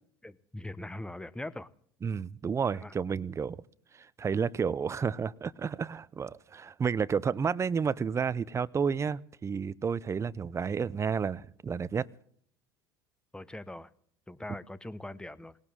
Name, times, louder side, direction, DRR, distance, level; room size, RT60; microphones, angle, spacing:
voice 1, 0.2-1.7 2.7-2.9 13.3-13.9 14.3-15.6, left 1 dB, 5° left, 16 dB, 1.0 m, -41 dB
voice 2, 2.0-3.6 3.9-12.1, right 6 dB, 25° right, 20 dB, 0.7 m, -31 dB
20.0 x 18.0 x 3.7 m, 0.63 s
hypercardioid pair, 75°, 12 cm